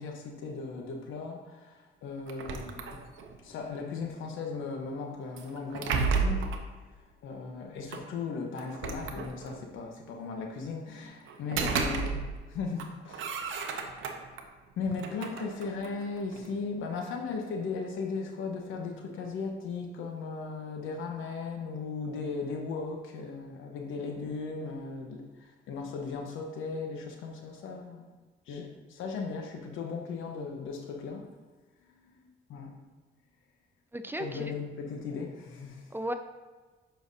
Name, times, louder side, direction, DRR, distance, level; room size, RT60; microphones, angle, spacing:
voice 1, 0.0-3.0 3.4-6.5 7.2-12.2 12.5-13.9 14.8-28.0 28.5-31.2 31.8-32.8 34.2-35.9, left 4 dB, 85° left, 2 dB, 1.1 m, -37 dB
sound 1, 2.3-3.4 5.4-6.7 7.9-8.0 8.6-9.7 11.3-12.5 12.8-14.4 14.9-16.5, right 5 dB, 80° right, 0.7 m, -33 dB
voice 2, 11.6-12.0 33.9-34.5 35.9-36.1, right 1 dB, 10° right, 8 dB, 0.4 m, -36 dB
7.4 x 5.7 x 2.7 m, 1.3 s
cardioid pair, 90°, 20 cm